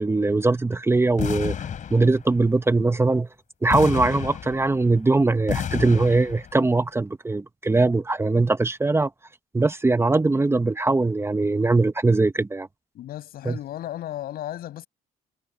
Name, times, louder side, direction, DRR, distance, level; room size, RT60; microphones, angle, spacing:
voice 1, 0.0-1.5 1.9-3.3 3.6-9.1 9.5-12.7 13.4-13.6, right 3 dB, 15° right, 1.0 m, -21 dB
sound 1, 1.2-2.4 3.7-5.0 5.5-6.6, left 8 dB, 55° left, 4.3 m, -30 dB
voice 2, 12.9-14.9, left 13 dB, 80° left, 7.5 m, -34 dB
cardioid pair, 95°, 15 cm